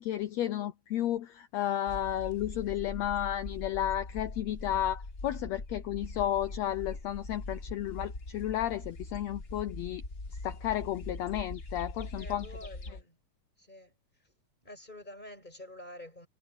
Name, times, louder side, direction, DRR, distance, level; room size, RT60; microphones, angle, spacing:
voice 1, 0.0-10.0 10.4-12.5, left 12 dB, 90° left, 1.5 m, -32 dB
sound 1, 1.9-13.0, left 2 dB, 35° left, 0.9 m, -42 dB
voice 2, 12.1-13.2 13.6-13.9 14.6-16.3, left 1 dB, 10° left, 6.3 m, -48 dB
omnidirectional pair, 4.0 m